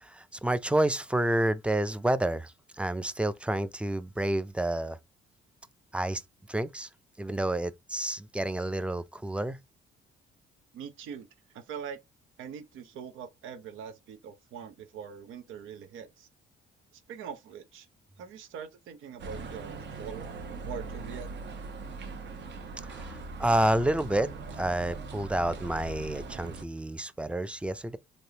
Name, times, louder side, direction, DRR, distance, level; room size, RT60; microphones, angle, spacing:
voice 1, 0.0-5.0 5.9-6.2 6.5-6.9 7.2-9.6 22.8-28.0, right 1 dB, 5° right, 0.3 m, -29 dB
voice 2, 10.7-11.3 11.5-12.0 12.4-16.3 17.1-17.9 18.2-20.3 20.6-21.3, right 7 dB, 90° right, 0.7 m, -42 dB
sound 1, 19.2-26.6, right 4 dB, 65° right, 0.9 m, -40 dB
3.3 x 2.6 x 2.8 m
cardioid pair, 90°, 20 cm